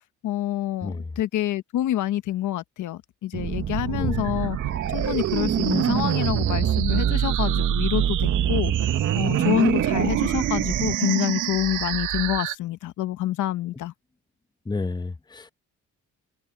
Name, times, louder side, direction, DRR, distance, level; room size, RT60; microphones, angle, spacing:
voice 1, 0.2-4.6 4.9-13.9, left 13 dB, 80° left, 1.2 m, -27 dB
sound 1, 3.3-10.9, right 9 dB, 50° right, 0.9 m, -25 dB
sound 2, 3.8-12.5, right 14 dB, 90° right, 2.1 m, -30 dB
voice 2, 3.9-4.3 14.7-15.5, left 3 dB, 15° left, 0.9 m, -31 dB
open air
cardioid pair, 90°, 30 cm